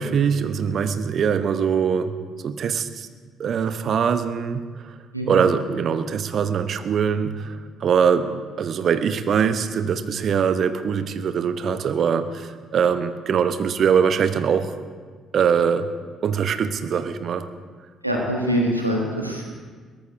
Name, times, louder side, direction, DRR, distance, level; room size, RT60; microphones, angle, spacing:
voice 1, 0.0-2.2 2.4-3.1 3.4-4.9 5.3-14.7 15.3-15.9 16.2-17.5, right 7 dB, 45° right, 10 dB, 0.9 m, -22 dB
voice 2, 18.0-19.4, equal, 90° right, -1 dB, 1.3 m, -23 dB
22.5 x 18.0 x 2.7 m, 1.5 s
figure-of-eight pair, 45°, 0 cm